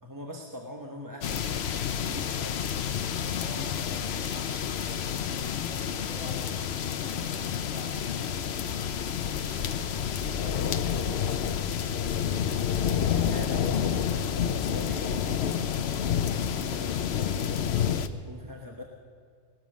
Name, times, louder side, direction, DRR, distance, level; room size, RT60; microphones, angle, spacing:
voice 1, 0.0-1.7 1.9-2.6 13.3-18.8, left 1 dB, 20° right, 1 dB, 1.1 m, -43 dB
sound 1, 1.2-18.1, left 8 dB, 75° left, 1.0 m, -29 dB
voice 2, 2.9-12.3, equal, 35° right, -4 dB, 5.1 m, -48 dB
18.5 x 12.5 x 6.3 m, 2.1 s
omnidirectional pair, 1.1 m